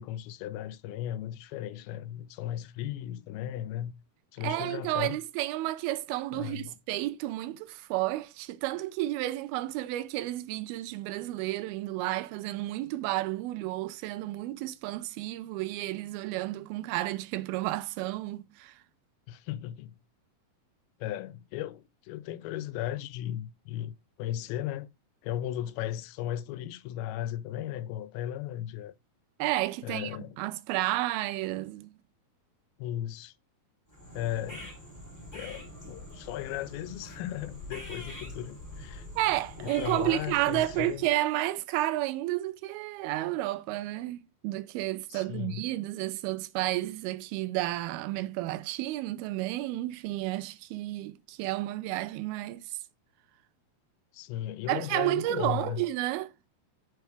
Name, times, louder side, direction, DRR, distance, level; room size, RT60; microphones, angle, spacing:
voice 1, 0.0-3.9 4.3-5.2 6.3-6.8 19.3-20.0 21.0-24.9 25.2-28.9 29.8-30.4 32.8-33.3 34.1-34.7 35.3-39.1 39.6-41.0 45.1-45.6 54.1-55.8, left 12 dB, 85° left, 2.4 m, -36 dB
voice 2, 4.4-18.8 29.4-31.9 39.2-52.8 54.7-56.3, right 16 dB, 85° right, 2.4 m, -31 dB
sound 1, 33.9-41.2, left 1 dB, 5° left, 2.3 m, -45 dB
7.1 x 4.6 x 3.3 m
omnidirectional pair, 4.3 m